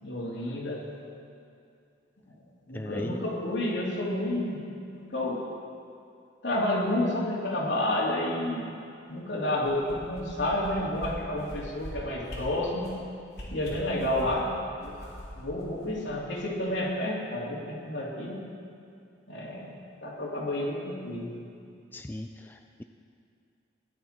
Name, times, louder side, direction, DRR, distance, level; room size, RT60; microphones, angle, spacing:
voice 1, 0.0-0.8 2.7-4.6 4.9-5.4 6.4-8.7 9.1-12.9 13.5-14.5 14.8-14.9 15.4-18.4 19.3-19.7 20.0-21.3, left 1 dB, 75° left, -4 dB, 2.8 m, -30 dB
voice 2, 2.7-3.2 21.9-22.8, left 1 dB, 10° left, 5 dB, 0.3 m, -38 dB
sound 1, 9.6-10.7 11.0-11.1 11.4-11.9 12.3-12.4 12.8-13.0 13.3-14.4 14.8-16.4 16.8-16.9, equal, 55° left, 3.6 m, -42 dB
17.0 x 10.5 x 4.4 m, 2.4 s
head